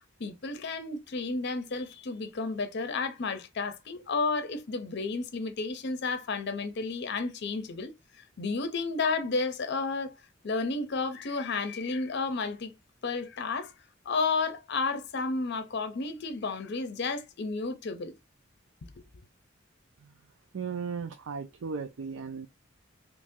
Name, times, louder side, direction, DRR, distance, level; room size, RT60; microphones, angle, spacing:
voice 1, 0.2-7.9 8.4-10.2 10.4-12.7 13.0-13.7 14.1-18.1, left 4 dB, 55° left, 0.6 m, -32 dB
voice 2, 20.5-22.5, right 5 dB, 80° right, 0.4 m, -36 dB
3.0 x 2.6 x 3.6 m
head